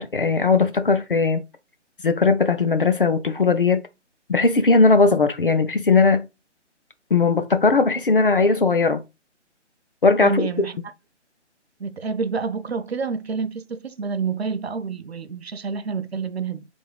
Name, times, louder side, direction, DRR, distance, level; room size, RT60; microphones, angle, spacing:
voice 1, 0.0-1.4 2.0-3.9 4.3-6.3 7.1-9.0 10.0-10.4, left 4 dB, 50° left, 0.5 m, -18 dB
voice 2, 10.2-10.8 11.8-16.7, right 5 dB, 60° right, 0.6 m, -28 dB
3.5 x 3.4 x 3.9 m
hypercardioid pair, 180°, 36 cm